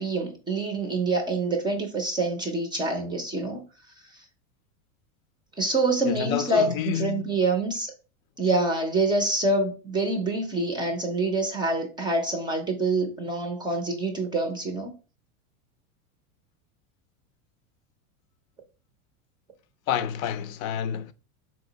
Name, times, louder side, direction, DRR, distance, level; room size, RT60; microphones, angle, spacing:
voice 1, 0.0-3.6 5.6-7.9 8.4-14.9, right 2 dB, 10° right, 0.3 m, -26 dB
voice 2, 6.0-7.3 19.9-21.1, left 9 dB, 80° left, 0.6 m, -29 dB
3.9 x 2.9 x 3.8 m
supercardioid pair, 140°, 40 cm